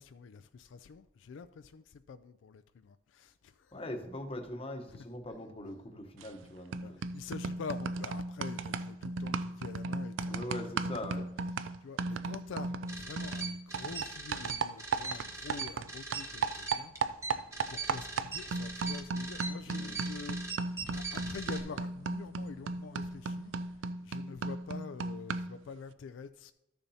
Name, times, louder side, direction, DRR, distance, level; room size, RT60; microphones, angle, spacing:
voice 1, 0.0-3.8 4.9-5.0 6.8-10.5 10.8-26.5, left 5 dB, 75° left, 0.3 m, -47 dB
voice 2, 3.7-7.0 10.3-11.3 19.7-20.0, left 1 dB, 30° left, 0.9 m, -41 dB
sound 1, 6.2-6.4 6.7-25.6, right 4 dB, 80° right, 0.4 m, -36 dB
sound 2, 12.9-21.6, right 4 dB, 15° right, 1.2 m, -41 dB
sound 3, 16.9-23.8, equal, 50° right, 1.5 m, -61 dB
13.0 x 6.9 x 2.8 m
head